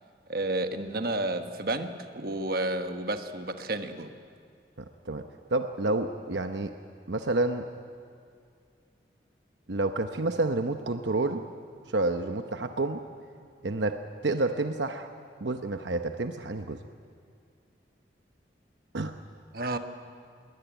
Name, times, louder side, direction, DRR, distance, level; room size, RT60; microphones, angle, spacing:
voice 1, 0.3-1.9 2.1-4.1 19.5-19.8, right 2 dB, 55° right, 7 dB, 1.3 m, -31 dB
voice 2, 5.5-6.7 7.1-7.7 9.7-11.4 11.9-13.0 13.6-15.1 15.4-16.8 18.9-19.1, right 2 dB, 80° right, 6 dB, 0.9 m, -29 dB
21.5 x 20.0 x 9.1 m, 2.3 s
head